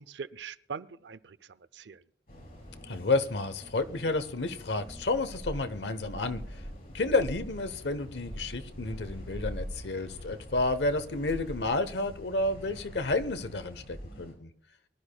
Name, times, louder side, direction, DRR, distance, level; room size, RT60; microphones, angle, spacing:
voice 1, 0.0-2.0, right 6 dB, 85° right, 15 dB, 0.6 m, -42 dB
sound 1, 2.3-14.3, equal, 60° left, 5.0 m, -48 dB
sound 2, 2.3-12.1, left 1 dB, 40° left, 5.7 m, -56 dB
voice 2, 2.9-6.4 6.9-14.5, left 2 dB, 80° left, 11 dB, 1.0 m, -30 dB
sound 3, 4.9-13.3, equal, 40° right, 5.8 m, -43 dB
23.5 x 12.0 x 2.3 m, 0.68 s
head